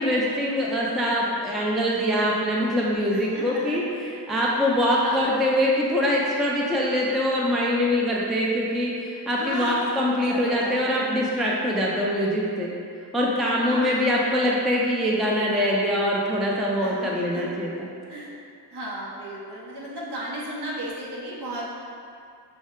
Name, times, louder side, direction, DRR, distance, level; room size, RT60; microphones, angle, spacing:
voice 1, 0.0-12.7 13.1-17.7, equal, ahead, -4 dB, 0.4 m, -23 dB
voice 2, 3.1-3.9 4.3-4.4 5.0-5.4 9.4-10.8 13.6-14.6 16.8-17.6 18.1-18.4 18.7-21.7, right 1 dB, 75° right, -5 dB, 0.8 m, -35 dB
6.2 x 2.1 x 3.6 m, 2.4 s
wide cardioid pair, 105°, 41 cm